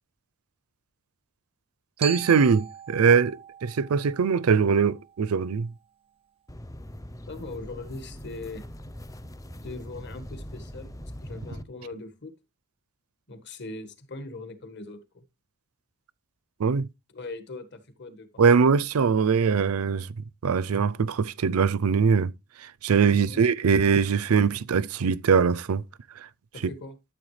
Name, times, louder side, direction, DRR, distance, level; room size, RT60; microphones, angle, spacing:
Glockenspiel, 2.0-6.1, right 8 dB, 25° right, 0.4 m, -41 dB
voice 1, 2.0-5.7 16.6-16.9 18.4-20.1 20.4-22.3 22.8-25.8, right 6 dB, 80° right, 0.5 m, -22 dB
sound 1, 6.5-11.6, equal, 15° left, 0.6 m, -41 dB
voice 2, 7.3-8.6 9.6-10.9 11.2-12.3 13.3-15.2 17.1-18.3 18.8-18.9 23.1-23.5 26.5-27.0, left 2 dB, 55° left, 1.6 m, -40 dB
12.5 x 7.6 x 3.2 m
head